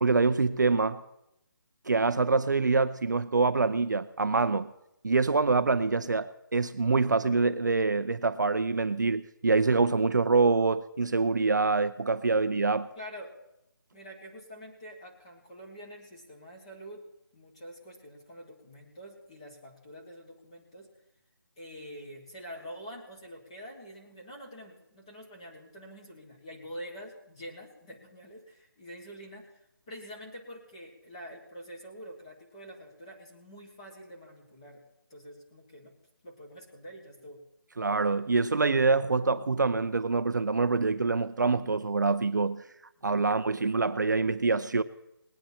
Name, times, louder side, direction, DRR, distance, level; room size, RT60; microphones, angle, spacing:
voice 1, 0.0-1.0 1.9-4.7 5.0-12.9 37.8-42.6 43.0-44.8, right 4 dB, 55° right, 0.6 m, -25 dB
voice 2, 13.0-13.3 13.9-17.0 17.3-20.9 21.6-34.8 35.1-35.9 36.2-37.4 43.0-43.1 43.5-43.7, equal, 15° left, 1.3 m, -46 dB
20.0 x 9.0 x 4.3 m
hypercardioid pair, 180°, 12 cm